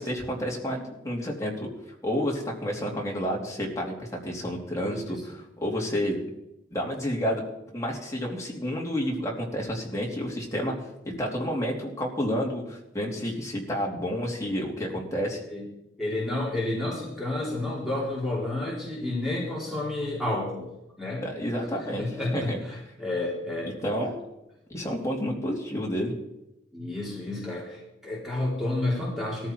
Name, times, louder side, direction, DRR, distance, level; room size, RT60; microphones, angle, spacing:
voice 1, 0.0-1.7 2.0-6.2 6.7-7.4 7.7-10.7 11.0-15.4 21.2-22.1 22.3-22.6 23.8-24.2 24.7-26.1, equal, 15° left, -2 dB, 3.1 m, -30 dB
voice 2, 16.0-20.7 21.0-21.2 21.8-23.7 26.7-29.5, left 2 dB, ahead, -5 dB, 3.4 m, -30 dB
18.0 x 14.0 x 4.7 m, 0.89 s
head